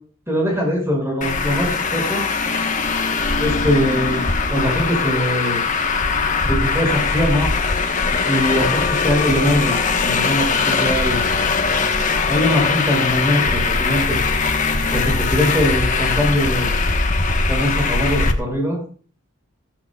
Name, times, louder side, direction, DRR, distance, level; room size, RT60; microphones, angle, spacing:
voice 1, 0.3-2.2 3.4-4.2 4.5-5.6 6.4-7.5 8.2-11.2 12.3-14.2 14.9-16.7 17.5-18.8, equal, 10° right, 0 dB, 5.9 m, -21 dB
Traffic noise roadway noise, 1.2-18.3, left 4 dB, 35° left, 1.1 m, -20 dB
15.0 x 14.5 x 2.3 m, 0.41 s
head